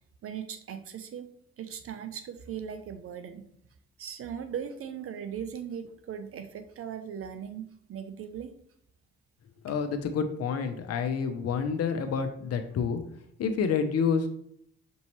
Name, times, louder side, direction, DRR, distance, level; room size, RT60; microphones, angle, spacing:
voice 1, 0.2-1.3 1.6-3.5 4.0-8.5, right 8 dB, 50° right, 9 dB, 0.6 m, -38 dB
voice 2, 9.6-13.0 13.4-14.3, left 6 dB, 55° left, 7 dB, 0.7 m, -28 dB
6.1 x 2.7 x 3.0 m, 0.68 s
hypercardioid pair, 50°, 29 cm